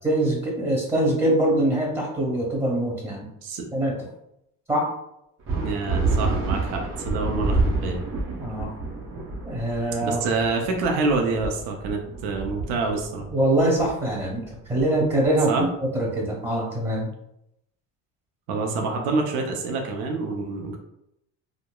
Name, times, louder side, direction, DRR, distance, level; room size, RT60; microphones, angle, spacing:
voice 1, 0.0-3.3 3.7-3.9 4.7-4.9 8.4-8.7 9.4-10.2 13.3-15.7 15.9-17.1, right 1 dB, 5° right, -3 dB, 1.5 m, -23 dB
sound 1, 5.5-15.4, right 3 dB, 35° right, 0.7 m, -28 dB
voice 2, 5.5-8.0 10.0-13.3 15.5-15.7 18.5-20.8, right 3 dB, 90° right, 2 dB, 0.5 m, -27 dB
2.9 x 2.0 x 2.2 m, 0.80 s
supercardioid pair, 90°, 37 cm